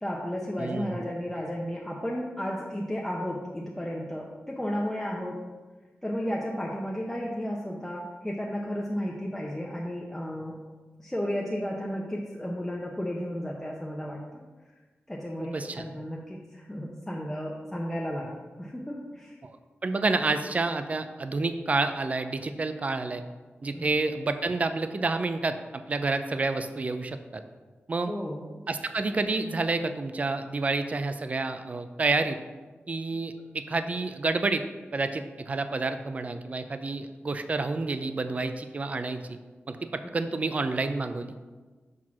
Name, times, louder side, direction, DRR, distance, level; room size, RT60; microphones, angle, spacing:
voice 1, 0.0-5.4 6.0-10.5 11.0-14.4 15.1-18.3 18.6-19.4 23.7-23.9 28.1-28.5, equal, 10° left, -3 dB, 0.7 m, -33 dB
voice 2, 0.6-1.0 15.4-15.8 19.4-19.6 19.8-23.2 23.6-27.4 27.9-28.1 28.7-32.4 32.9-34.6 34.9-39.4 39.7-41.3, right 3 dB, 35° right, 9 dB, 0.4 m, -29 dB
6.1 x 4.4 x 6.2 m, 1.3 s
wide cardioid pair, 135°, 4 cm